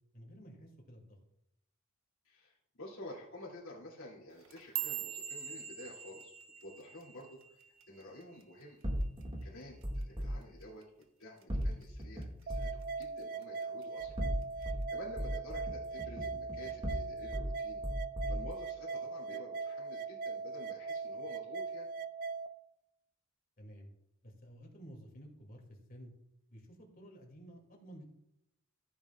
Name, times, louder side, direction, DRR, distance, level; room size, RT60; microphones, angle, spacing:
voice 1, 0.1-1.2 10.3-10.4 23.6-23.9 24.2-26.1 26.5-28.0, equal, 45° left, 1 dB, 2.5 m, -53 dB
voice 2, 2.2-6.3 6.6-7.6 7.9-8.8 9.4-10.9 11.2-14.2 14.5-17.8 18.3-21.9, left 1 dB, 75° left, -6 dB, 2.6 m, -50 dB
sound 1, 4.3-8.7 9.0-9.4 9.8-10.2 10.6-10.8 11.4-11.8 12.2-13.0 13.4-13.8 14.6-14.7, right 10 dB, 70° right, 1.1 m, -43 dB
sound 2, 8.8-10.3 11.5-12.8 14.0-14.8 15.2-17.5 17.8-18.5, equal, 25° right, 2.0 m, -37 dB
sound 3, 12.5-22.5, right 4 dB, 45° right, 0.4 m, -40 dB
14.0 x 9.0 x 2.4 m, 0.82 s
head